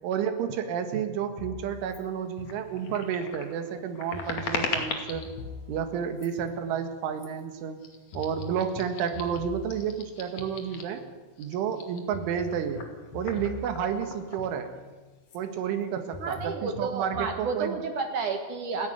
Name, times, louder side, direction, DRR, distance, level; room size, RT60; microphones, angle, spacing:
voice 1, 0.0-5.3 5.7-7.8 8.1-11.0 11.4-12.8 13.1-14.7 15.3-17.8, right 8 dB, 80° right, 7 dB, 4.2 m, -31 dB
sound 1, 1.4-3.3 4.1-7.2 8.1-11.2 12.1-15.2 16.1-17.5, left 6 dB, 85° left, 1.7 m, -45 dB
sound 2, 1.9-2.0 2.4-5.3 6.1-6.5 7.2-7.4 7.8-11.0 11.3-15.0 15.2-15.4 15.7-16.4, left 5 dB, 45° left, 2.8 m, -39 dB
voice 2, 16.2-18.9, right 4 dB, 60° right, 5 dB, 2.2 m, -31 dB
29.5 x 10.5 x 9.2 m, 1.3 s
omnidirectional pair, 5.5 m